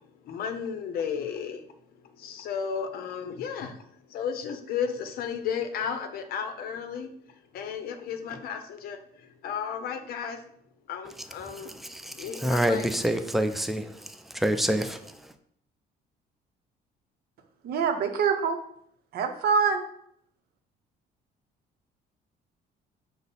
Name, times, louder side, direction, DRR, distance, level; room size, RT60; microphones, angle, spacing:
voice 1, 0.2-1.6 2.0-10.4 10.9-11.7 12.0-12.9, left 7 dB, 65° left, 7 dB, 0.6 m, -34 dB
voice 2, 11.2-15.3, right 1 dB, ahead, 8 dB, 0.3 m, -28 dB
voice 3, 17.6-18.6 19.1-19.9, right 6 dB, 65° right, 6 dB, 0.6 m, -25 dB
5.2 x 2.0 x 4.1 m, 0.69 s
cardioid pair, 110°, 17 cm